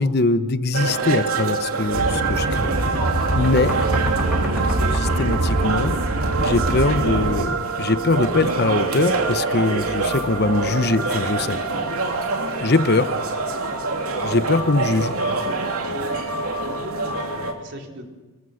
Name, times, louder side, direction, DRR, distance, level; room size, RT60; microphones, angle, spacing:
voice 1, 0.0-2.7 3.3-3.8 4.9-6.0 6.4-11.6 12.6-13.1 14.2-15.1, left 2 dB, 50° left, 12 dB, 1.0 m, -22 dB
sound 1, 0.7-17.5, right 4 dB, 90° right, 3.0 m, -25 dB
sound 2, 1.9-7.4, right 1 dB, 70° right, 2.0 m, -24 dB
sound 3, 2.2-6.9, equal, ahead, 7.7 m, -35 dB
voice 2, 14.3-14.6 15.9-16.0 16.6-18.1, right 1 dB, 55° right, 2 dB, 3.9 m, -39 dB
26.5 x 22.0 x 6.6 m, 1.2 s
head